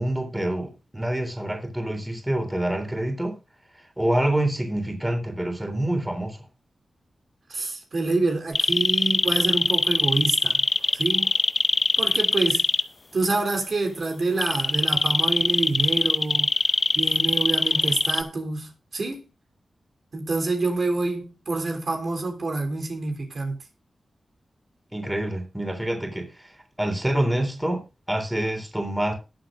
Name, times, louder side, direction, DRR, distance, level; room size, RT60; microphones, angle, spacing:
voice 1, 0.0-3.4 4.0-6.4 24.9-26.5 26.8-29.1, right 1 dB, 5° right, 3.4 m, -26 dB
voice 2, 7.5-10.6 10.9-11.3 12.0-12.7 13.1-16.5 17.0-19.3 20.1-23.6, right 3 dB, 60° right, 3.4 m, -27 dB
sound 1, 8.5-12.8 14.4-18.2, left 3 dB, 40° left, 0.6 m, -21 dB
20.5 x 7.7 x 2.6 m
wide cardioid pair, 100°, 0 cm